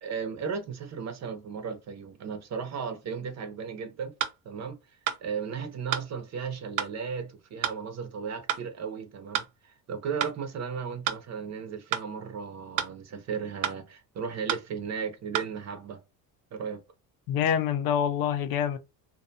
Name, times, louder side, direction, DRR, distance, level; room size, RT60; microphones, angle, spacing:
voice 1, 0.0-4.2 4.4-4.8 5.2-16.0 16.5-16.8, right 6 dB, 40° right, 0.7 m, -35 dB
sound 1, 4.2-4.4 5.1-5.2 5.9-6.1 6.8-6.9 7.6-7.8 8.5-8.7 9.3-9.5 10.2-10.4 11.1-11.2 11.9-12.1 12.8-12.9 13.6-13.8 14.5-14.7 15.3-15.5, right 10 dB, 75° right, 0.6 m, -30 dB
voice 2, 17.3-18.8, left 9 dB, 60° left, 0.5 m, -26 dB
2.6 x 2.3 x 2.6 m
cardioid pair, 105°, 40 cm